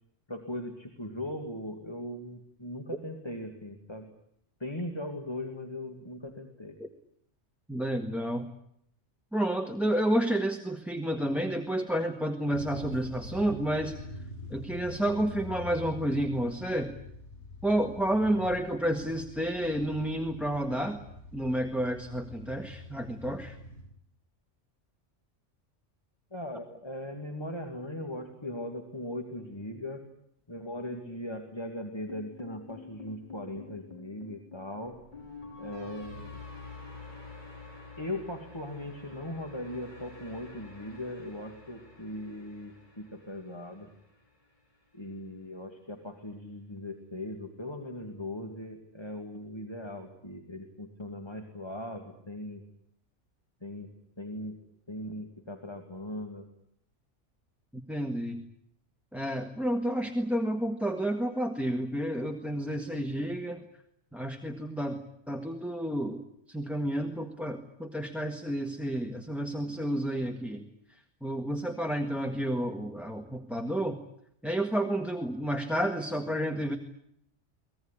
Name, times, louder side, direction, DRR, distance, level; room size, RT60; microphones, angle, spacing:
voice 1, 0.3-4.1 4.6-6.7 26.3-30.0 30.5-34.9 35.6-36.4 38.0-43.9 44.9-52.6 53.6-53.9 54.2-54.6 54.9-56.4, left 1 dB, 20° left, 4 dB, 2.6 m, -39 dB
voice 2, 7.7-8.5 9.3-13.9 14.5-16.9 17.6-21.0 21.3-23.6 57.9-58.4 59.1-63.6 64.1-65.0 65.3-66.2 66.5-70.6 71.2-74.0 74.4-76.8, right 1 dB, ahead, 5 dB, 1.6 m, -30 dB
sound 1, 12.5-23.8, left 2 dB, 70° left, 7.9 m, -45 dB
sound 2, 32.1-44.3, left 4 dB, 40° left, 5.7 m, -48 dB
24.0 x 19.0 x 10.0 m, 0.71 s
omnidirectional pair, 1.2 m